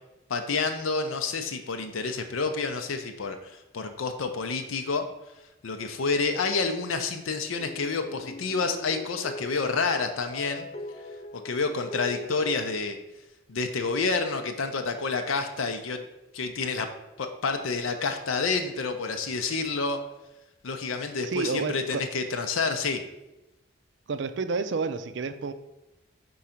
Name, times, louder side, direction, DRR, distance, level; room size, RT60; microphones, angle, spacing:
voice 1, 0.3-5.0 5.6-10.7 11.3-13.0 13.5-16.0 16.3-16.9 17.2-20.0 20.6-23.0, left 4 dB, 85° left, 6 dB, 0.6 m, -29 dB
sound 1, 7.6-12.6, left 2 dB, 30° left, 0.4 m, -41 dB
voice 2, 21.2-22.0 24.1-25.5, right 4 dB, 60° right, 10 dB, 0.4 m, -30 dB
4.7 x 3.8 x 5.7 m, 0.97 s
head